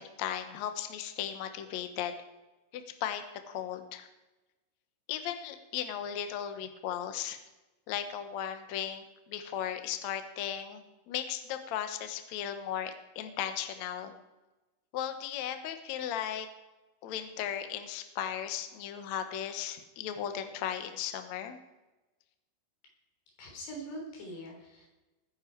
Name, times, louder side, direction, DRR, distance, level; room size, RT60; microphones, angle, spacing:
voice 1, 0.0-2.1 2.7-4.1 5.1-7.4 7.9-14.1 14.9-16.5 17.0-21.6, left 10 dB, 65° left, 8 dB, 1.8 m, -36 dB
voice 2, 23.4-24.9, right 1 dB, 85° left, 0 dB, 5.6 m, -43 dB
19.5 x 10.5 x 4.6 m, 1.1 s
omnidirectional pair, 4.6 m